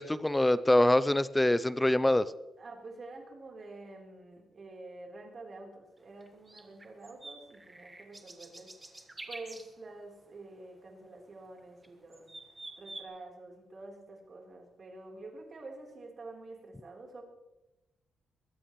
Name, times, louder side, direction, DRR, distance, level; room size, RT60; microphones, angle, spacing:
voice 1, 0.0-2.3, left 1 dB, 5° left, 15 dB, 0.5 m, -24 dB
voice 2, 2.6-12.3 12.8-17.2, right 2 dB, 35° right, 0 dB, 3.6 m, -48 dB
sound 1, 6.2-9.7 11.6-11.9 12.1-13.0, right 2 dB, 15° right, 1.4 m, -47 dB
21.5 x 15.5 x 3.1 m, 0.97 s
wide cardioid pair, 165°, 0 cm